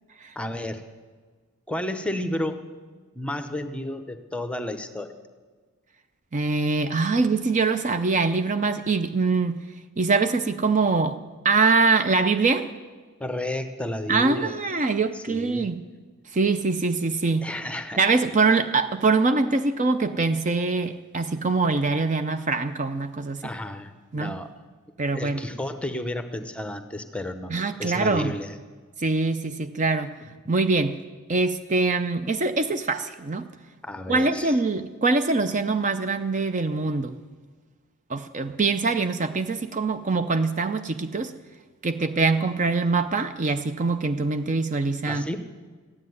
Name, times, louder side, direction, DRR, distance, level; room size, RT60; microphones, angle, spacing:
voice 1, 0.3-0.8 1.7-2.6 3.1-5.2 13.2-14.6 15.1-15.7 17.4-18.1 23.4-24.5 25.1-28.6 33.8-34.5 45.1-45.4, left 1 dB, 5° left, 9 dB, 0.9 m, -32 dB
voice 2, 6.3-9.5 10.0-11.2 11.4-12.7 14.1-15.8 16.3-17.4 18.0-23.4 24.1-24.3 25.0-25.4 27.5-28.3 29.0-30.2 30.5-31.0 31.3-33.5 34.1-37.2 38.1-41.3 41.8-45.3, right 3 dB, 35° right, 9 dB, 0.6 m, -23 dB
14.0 x 9.8 x 9.5 m, 1.4 s
head